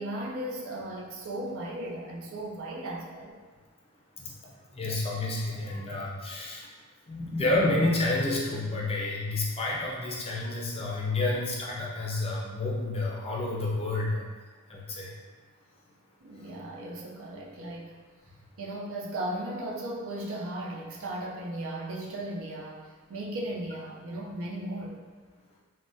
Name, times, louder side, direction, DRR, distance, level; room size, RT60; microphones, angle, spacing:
voice 1, 0.0-3.4 16.2-17.9 18.6-25.0, right 1 dB, 65° right, -3 dB, 0.5 m, -36 dB
voice 2, 4.7-6.7 7.1-14.2 14.7-15.1, left 2 dB, 25° left, -4 dB, 0.5 m, -29 dB
3.4 x 2.1 x 2.6 m, 1.4 s
head